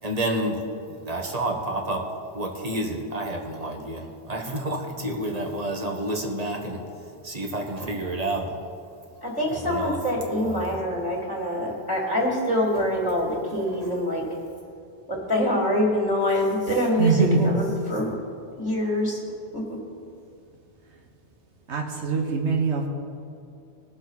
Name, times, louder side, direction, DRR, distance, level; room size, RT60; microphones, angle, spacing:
voice 1, 0.0-0.6 0.9-2.0 2.3-6.8 7.2-8.6 9.5-10.0 10.4-10.8 12.7-13.2 13.7-13.9, right 1 dB, 35° right, 2 dB, 1.3 m, -30 dB
voice 2, 9.2-14.2 15.1-18.1 18.6-19.2 19.5-19.8, left 1 dB, 20° left, -3 dB, 2.7 m, -25 dB
voice 3, 17.0-17.5 21.7-22.9, right 4 dB, 85° right, 1 dB, 1.6 m, -22 dB
19.0 x 7.2 x 4.1 m, 2.5 s
omnidirectional pair, 1.1 m